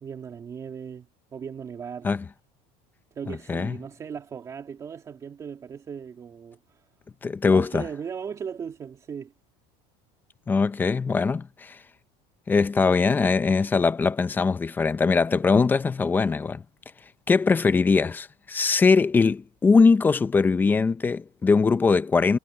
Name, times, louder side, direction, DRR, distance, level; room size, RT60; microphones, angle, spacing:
voice 1, 0.0-1.1 1.3-2.1 3.1-6.8 7.4-9.3, right 7 dB, 25° right, 2.3 m, -37 dB
voice 2, 3.3-3.8 7.2-7.8 10.5-11.8 12.5-16.6 17.3-22.4, left 4 dB, 15° left, 0.7 m, -21 dB
cardioid pair, 160°, 14 cm